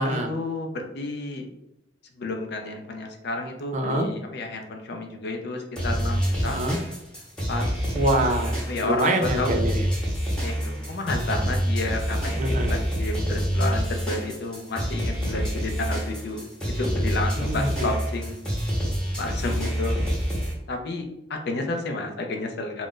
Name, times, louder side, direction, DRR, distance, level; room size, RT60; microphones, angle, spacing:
voice 1, 0.0-1.5 2.2-6.6 7.5-7.9 8.7-9.6 10.4-16.4 16.7-18.3 19.2-20.0 20.7-22.9, left 2 dB, 60° left, 4 dB, 0.5 m, -31 dB
voice 2, 3.7-4.1 6.4-6.8 7.9-9.9 12.4-12.7 17.4-17.9, right 1 dB, 40° right, 3 dB, 0.4 m, -25 dB
sound 1, 5.7-20.5, equal, 5° left, 0.8 m, -27 dB
2.4 x 2.1 x 3.7 m, 0.85 s
head